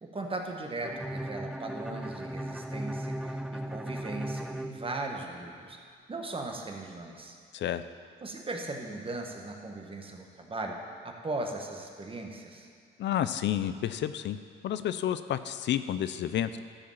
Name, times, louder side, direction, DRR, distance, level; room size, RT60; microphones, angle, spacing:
voice 1, 0.0-5.8 6.1-7.4 8.2-12.7, right 2 dB, 25° right, 2 dB, 1.4 m, -38 dB
Bowed string instrument, 0.8-5.6, right 1 dB, 5° right, 0.4 m, -37 dB
voice 2, 13.0-14.4 14.6-16.6, left 10 dB, 65° left, 12 dB, 0.5 m, -30 dB
13.0 x 5.2 x 7.2 m, 2.2 s
cardioid pair, 90°, 20 cm